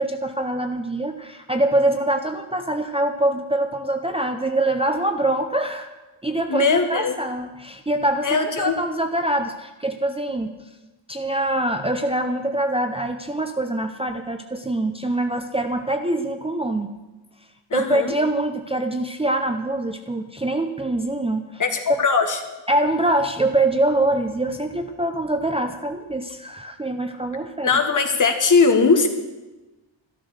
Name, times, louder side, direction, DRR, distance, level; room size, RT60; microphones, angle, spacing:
voice 1, 0.0-5.9 6.2-10.5 11.1-16.9 17.7-21.6 21.9-22.0 22.7-27.7, right 1 dB, 15° right, 5 dB, 0.7 m, -24 dB
voice 2, 6.5-7.1 8.2-8.8 17.7-18.1 21.6-22.4 27.6-29.1, left 5 dB, 40° left, 5 dB, 1.7 m, -19 dB
13.5 x 12.5 x 6.4 m, 1.1 s
wide cardioid pair, 175°, 46 cm